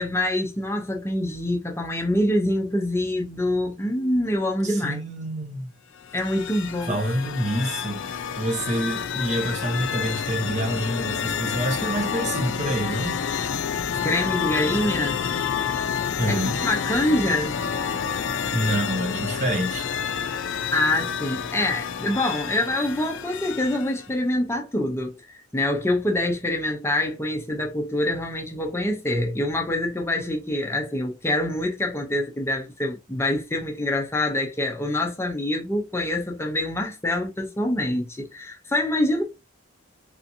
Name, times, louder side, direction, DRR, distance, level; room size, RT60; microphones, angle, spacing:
voice 1, 0.0-5.0 6.1-7.0 14.0-15.2 16.3-16.4 16.6-17.5 20.7-39.2, left 1 dB, 15° left, 0.6 m, -25 dB
voice 2, 4.6-5.7 6.8-8.0 8.4-13.2 16.2-16.6 18.5-19.9, right 1 dB, 35° right, 0.8 m, -27 dB
sound 1, 5.9-24.1, left 7 dB, 65° left, 0.4 m, -29 dB
3.4 x 2.8 x 2.7 m
head